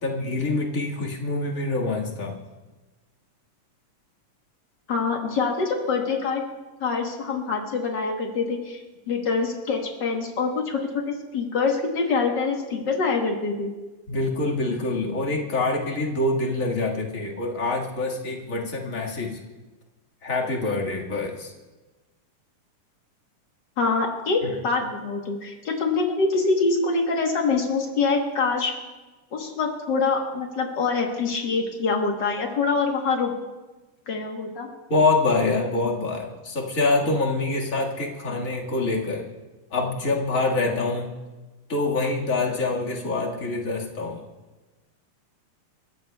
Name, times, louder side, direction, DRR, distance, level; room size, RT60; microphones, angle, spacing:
voice 1, 0.0-2.4 14.1-19.4 20.2-21.5 24.4-24.5 34.9-39.2 39.7-41.1 41.7-44.2, left 2 dB, 35° left, -2 dB, 1.5 m, -25 dB
voice 2, 4.9-6.4 6.8-8.8 9.1-13.7 23.8-28.7 29.3-33.3 34.1-34.7, left 4 dB, 80° left, 1 dB, 0.9 m, -25 dB
30.0 x 15.0 x 2.3 m, 1.2 s
omnidirectional pair, 3.9 m